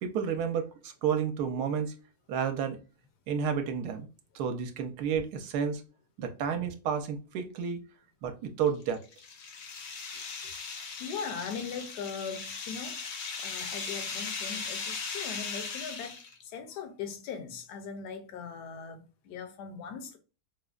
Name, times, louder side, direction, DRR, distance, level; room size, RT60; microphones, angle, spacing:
voice 1, 0.0-1.9 2.3-2.8 3.3-4.1 4.3-5.8 6.2-7.8 8.2-9.0, right 7 dB, 75° right, 1.1 m, -31 dB
sound 1, 8.7-16.4, left 5 dB, 60° left, 0.7 m, -38 dB
voice 2, 11.0-20.2, left 6 dB, 80° left, 1.2 m, -40 dB
4.9 x 2.1 x 2.4 m
omnidirectional pair, 1.7 m